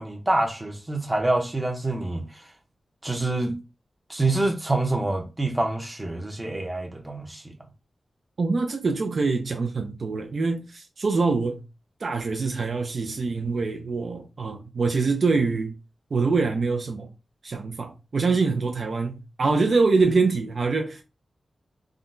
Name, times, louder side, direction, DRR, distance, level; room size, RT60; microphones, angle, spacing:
voice 1, 0.0-2.4 3.0-3.6 4.1-7.5, right 2 dB, 15° right, 0.7 m, -26 dB
voice 2, 8.4-11.6 12.0-15.7 16.1-17.1 17.4-21.0, right 4 dB, 55° right, 0.4 m, -24 dB
3.6 x 2.1 x 2.5 m
wide cardioid pair, 105°, 0 cm